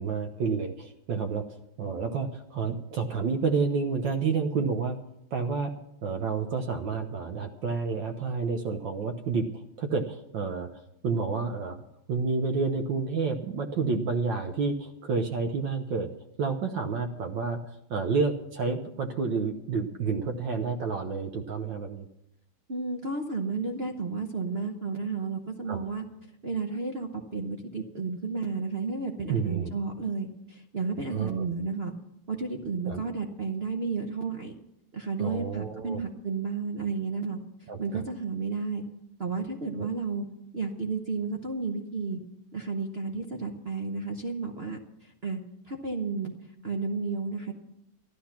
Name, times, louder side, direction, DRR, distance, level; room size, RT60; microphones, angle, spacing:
voice 1, 0.0-5.0 5.3-5.7 6.0-16.1 16.4-17.6 17.9-22.1 25.7-25.8 29.3-29.7 31.1-31.5 32.9-33.0 35.2-36.0 37.7-38.0 39.8-39.9, right 4 dB, 65° right, 4 dB, 1.5 m, -30 dB
voice 2, 22.7-26.0 26.4-31.9 32.3-34.6 34.9-38.8 39.2-40.2 40.5-42.2 42.5-45.4 45.6-46.3 46.6-47.5, right 4 dB, 45° right, 3 dB, 0.8 m, -32 dB
13.0 x 12.5 x 5.9 m, 0.79 s
omnidirectional pair, 2.4 m